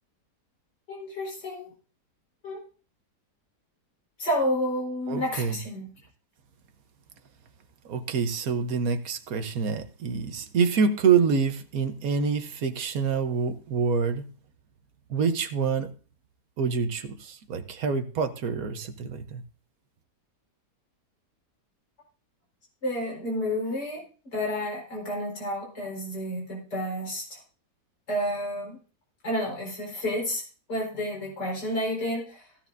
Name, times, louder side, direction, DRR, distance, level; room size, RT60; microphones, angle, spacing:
voice 1, 0.9-1.7 2.4-2.6 4.2-5.9 22.8-24.0 24.3-27.2 28.1-28.8 29.2-30.4 30.7-32.4, equal, 85° left, 5.2 m, -30 dB
voice 2, 5.1-5.6 7.9-14.3 15.1-15.9 16.6-19.4, right 6 dB, 60° right, 1.4 m, -26 dB
15.5 x 13.0 x 2.6 m
omnidirectional pair, 1.8 m